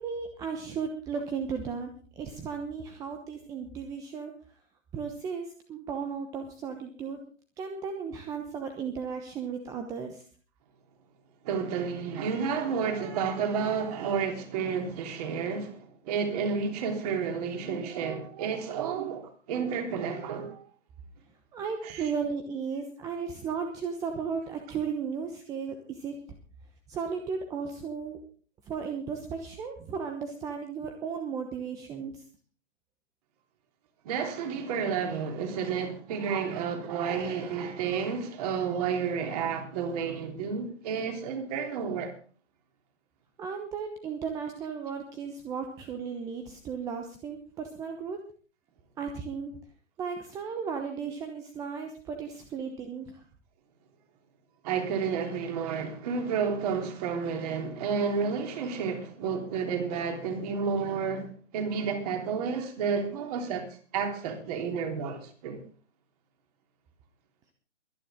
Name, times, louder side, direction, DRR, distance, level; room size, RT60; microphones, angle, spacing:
voice 1, 0.0-4.6 4.9-7.2 7.6-10.3 21.5-26.2 26.9-28.2 28.7-32.2 43.4-48.2 49.0-49.6 50.0-53.2, right 6 dB, 10° right, 0.9 m, -35 dB
voice 2, 11.4-20.6 21.8-22.1 34.1-42.1 54.6-63.7 63.9-65.6, right 6 dB, 30° right, 3.5 m, -31 dB
23.0 x 10.0 x 3.6 m
hypercardioid pair, 145°, 38 cm